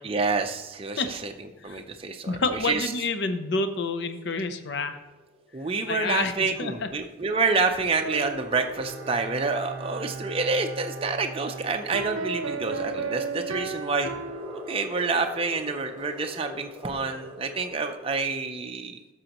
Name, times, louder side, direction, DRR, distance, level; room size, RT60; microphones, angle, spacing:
voice 1, 0.0-2.4 2.6-2.9 5.5-14.1 14.7-19.0, right 4 dB, 25° right, 4 dB, 0.5 m, -28 dB
sound 1, 1.1-18.2, left 1 dB, 5° left, 3.3 m, -46 dB
voice 2, 2.3-5.0 5.9-6.9, left 3 dB, 55° left, 8 dB, 0.6 m, -28 dB
sound 2, 7.8-9.4 11.9-15.2, right 4 dB, 85° right, 0.6 m, -34 dB
Bowed string instrument, 8.8-12.5 12.8-12.9, right 3 dB, 50° right, 0.8 m, -40 dB
13.0 x 6.2 x 2.9 m, 1.1 s
head